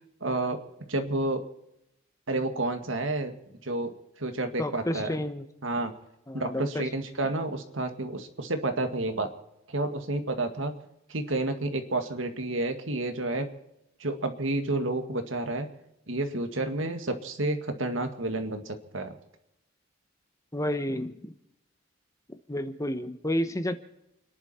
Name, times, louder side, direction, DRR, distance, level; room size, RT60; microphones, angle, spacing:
voice 1, 0.2-0.6 0.9-1.4 2.3-3.4 3.6-5.2 5.6-5.9 6.3-9.3 9.7-10.7 11.1-13.5 14.0-15.7 16.1-19.1, right 2 dB, 75° right, 6 dB, 2.1 m, -30 dB
voice 2, 4.6-5.4 6.3-6.9 20.5-21.3 22.3-23.8, left 1 dB, 15° left, 10 dB, 1.0 m, -31 dB
30.0 x 11.0 x 4.3 m, 0.85 s
head